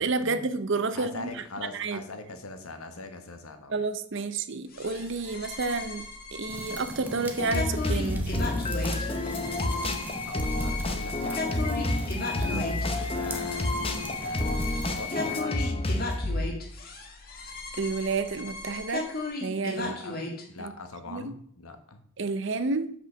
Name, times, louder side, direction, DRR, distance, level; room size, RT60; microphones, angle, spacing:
voice 1, 0.0-1.3 1.7-2.0 3.7-6.0 6.3-8.3 12.4-12.7 17.8-19.1 19.4-19.9 20.6-20.7 21.1-21.4 22.2-22.9, right 3 dB, 55° right, 12 dB, 0.6 m, -30 dB
voice 2, 0.9-3.7 10.2-13.8 14.2-15.1 15.3-15.8 19.8-20.2 20.5-22.0, left 3 dB, 85° left, 7 dB, 1.2 m, -42 dB
sound 1, 4.7-20.4, left 2 dB, 45° left, 1.6 m, -37 dB
sound 2, 6.5-15.4, right 1 dB, 10° right, 0.8 m, -41 dB
sound 3, 7.4-16.6, left 2 dB, 25° left, 0.7 m, -29 dB
6.3 x 5.4 x 6.4 m, 0.63 s
head